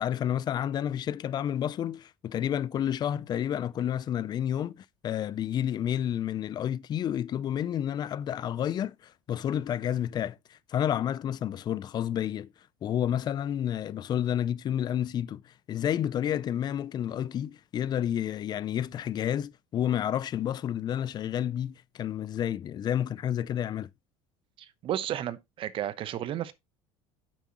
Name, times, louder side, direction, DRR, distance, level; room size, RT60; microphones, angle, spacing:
voice 1, 0.0-12.5 12.8-23.9, left 10 dB, 35° left, 0.5 m, -30 dB
voice 2, 24.6-26.5, right 11 dB, 45° right, 0.9 m, -33 dB
9.2 x 7.5 x 3.0 m
cardioid pair, 135°, 13 cm